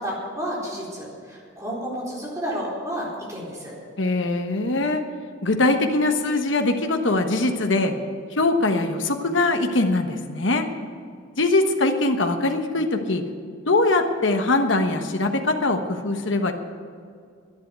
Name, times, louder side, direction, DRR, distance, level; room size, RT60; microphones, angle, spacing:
voice 1, 0.0-3.7, equal, 15° right, -5 dB, 4.0 m, -31 dB
voice 2, 4.0-5.0 5.4-7.9 8.3-10.6 11.4-13.2 13.7-16.5, left 2 dB, 70° left, 5 dB, 1.2 m, -22 dB
11.0 x 10.5 x 8.2 m, 2.2 s
head